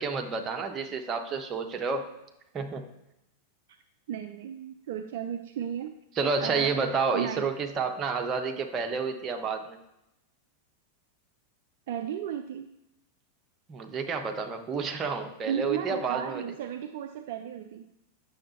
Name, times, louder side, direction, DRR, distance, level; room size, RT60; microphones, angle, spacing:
voice 1, 0.0-2.1 2.5-2.9 6.2-9.8 13.7-16.4, right 4 dB, 25° right, 4 dB, 1.0 m, -30 dB
voice 2, 4.1-5.9 6.4-6.8 7.1-7.5 11.9-12.7 15.4-17.9, right 9 dB, 55° right, 7 dB, 0.4 m, -34 dB
9.0 x 6.4 x 4.1 m, 0.89 s
figure-of-eight pair, 90°, 0 cm